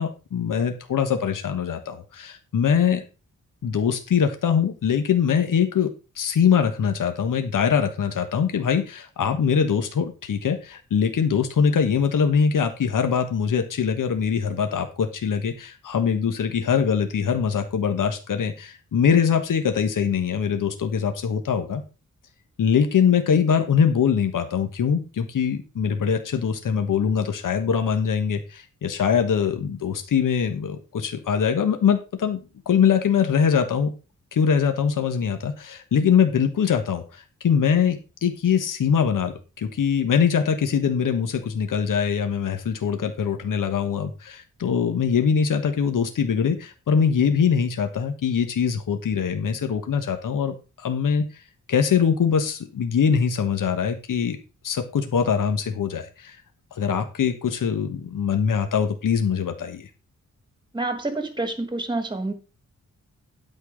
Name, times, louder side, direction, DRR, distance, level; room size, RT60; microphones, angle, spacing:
voice 1, 0.0-3.0 3.6-5.9 6.1-21.8 22.6-32.4 32.6-33.9 34.3-51.2 51.7-54.4 54.6-56.4 56.7-59.9, left 7 dB, 90° left, 7 dB, 1.4 m, -23 dB
voice 2, 60.7-62.3, right 2 dB, 15° right, 9 dB, 1.4 m, -28 dB
12.0 x 4.4 x 6.4 m, 0.32 s
wide cardioid pair, 175°, 31 cm